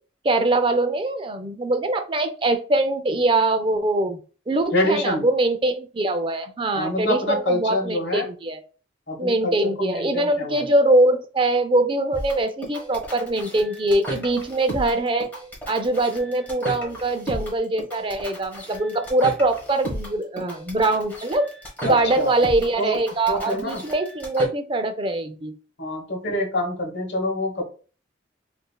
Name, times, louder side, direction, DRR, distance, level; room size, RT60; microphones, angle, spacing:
voice 1, 0.2-4.2 4.5-8.6 9.2-15.3 15.7-21.5 21.8-25.5, right 2 dB, 25° right, 8 dB, 0.5 m, -22 dB
voice 2, 4.7-5.2 6.7-8.3 9.1-10.7 21.8-22.3 22.8-23.0 23.3-23.9 25.8-27.6, left 1 dB, 65° left, 1 dB, 1.3 m, -26 dB
slow metal, 12.1-24.5, equal, 10° left, 1.2 m, -35 dB
4.9 x 2.6 x 2.3 m, 0.36 s
head